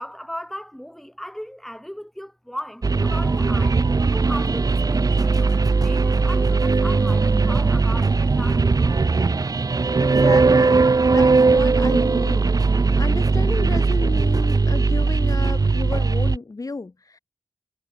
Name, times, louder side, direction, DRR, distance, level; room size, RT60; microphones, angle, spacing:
voice 1, 0.0-9.0, equal, 5° left, 6.3 m, -37 dB
sound 1, 2.8-16.4, right 4 dB, 50° right, 1.3 m, -19 dB
voice 2, 10.0-17.2, left 3 dB, 45° left, 3.0 m, -32 dB
wide cardioid pair, 70°, 8 cm